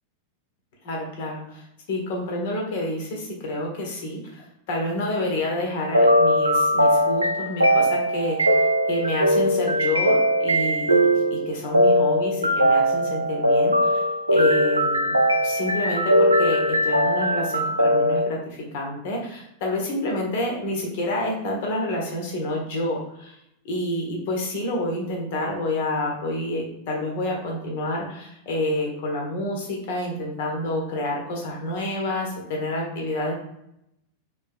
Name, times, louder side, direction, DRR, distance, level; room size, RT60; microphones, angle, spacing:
voice 1, 0.8-8.5 8.9-15.2 15.4-23.4 23.6-33.3, left 1 dB, 50° left, 0 dB, 1.3 m, -28 dB
sound 1, 5.9-18.3, equal, 85° right, 0.4 m, -20 dB
3.7 x 3.5 x 3.6 m, 0.79 s
figure-of-eight pair, 90°, 0 cm